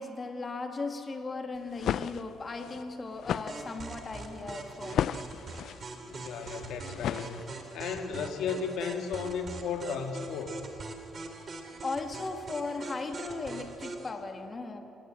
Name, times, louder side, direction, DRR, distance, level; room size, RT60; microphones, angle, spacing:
voice 1, 0.0-5.0 11.8-14.8, left 3 dB, 30° left, 5 dB, 2.2 m, -37 dB
sound 1, 1.6-7.8, left 9 dB, 65° left, 0.6 m, -35 dB
sound 2, 3.5-14.1, right 3 dB, 40° right, 2.8 m, -43 dB
voice 2, 6.1-10.6, left 6 dB, 85° left, 5 dB, 2.0 m, -35 dB
29.0 x 18.0 x 7.8 m, 2.7 s
cardioid pair, 130°, 0 cm